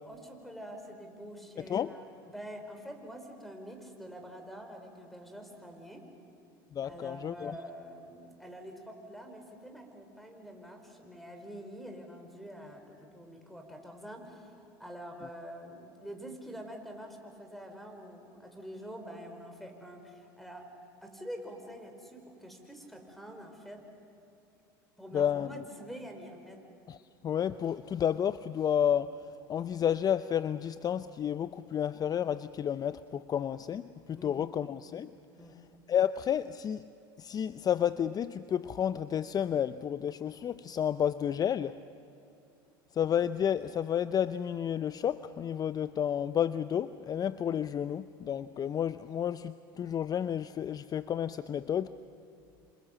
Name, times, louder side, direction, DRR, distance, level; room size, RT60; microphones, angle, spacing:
voice 1, 0.0-6.1 6.8-20.7 21.0-23.8 25.0-26.6 34.2-34.5 35.4-35.6, equal, ahead, 4 dB, 5.3 m, -46 dB
voice 2, 1.6-1.9 6.7-7.5 25.1-25.6 26.9-27.0 27.2-29.2 29.5-33.8 34.1-35.1 35.9-36.9 37.2-41.8 42.9-51.9, left 9 dB, 35° left, 14 dB, 0.6 m, -31 dB
29.0 x 27.0 x 7.6 m, 2.7 s
hypercardioid pair, 85°, 12 cm